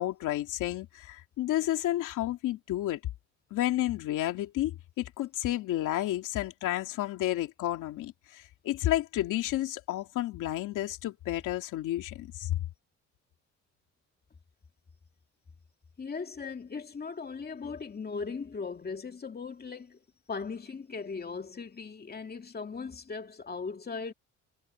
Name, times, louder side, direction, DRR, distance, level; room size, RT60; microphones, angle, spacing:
voice 1, 0.0-3.0 3.5-12.6, left 14 dB, 90° left, 2.8 m, -31 dB
voice 2, 16.0-20.0 20.3-24.1, left 5 dB, 30° left, 2.4 m, -38 dB
cardioid pair, 90°, 30 cm